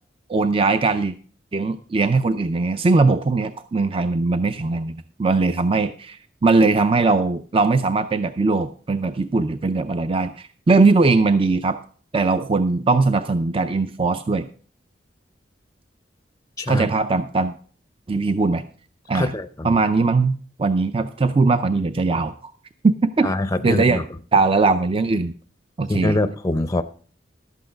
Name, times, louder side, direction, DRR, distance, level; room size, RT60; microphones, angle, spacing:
voice 1, 0.3-1.1 1.5-11.8 12.1-14.5 16.7-17.5 18.1-18.6 19.1-19.3 19.6-22.5 22.8-23.3 23.6-24.0 24.3-25.3 25.8-26.2, right 3 dB, 30° right, 11 dB, 0.4 m, -20 dB
voice 2, 16.6-16.9 19.1-19.8 23.2-24.0 25.9-26.8, left 2 dB, 20° left, 10 dB, 0.5 m, -24 dB
12.0 x 8.3 x 5.0 m, 0.43 s
head